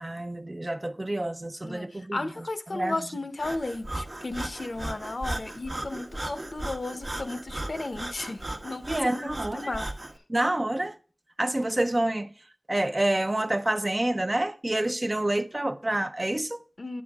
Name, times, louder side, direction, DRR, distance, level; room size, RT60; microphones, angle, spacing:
voice 1, 0.0-2.2 2.7-3.0 8.9-9.6 10.3-11.0 11.4-12.3 12.7-16.6, right 1 dB, 40° right, 0.6 m, -28 dB
voice 2, 1.6-9.9 16.8-17.0, left 2 dB, 80° left, 0.8 m, -34 dB
Breathing, 3.4-10.2, right 1 dB, 55° right, 1.0 m, -36 dB
8.7 x 8.4 x 3.5 m
wide cardioid pair, 50°, 0 cm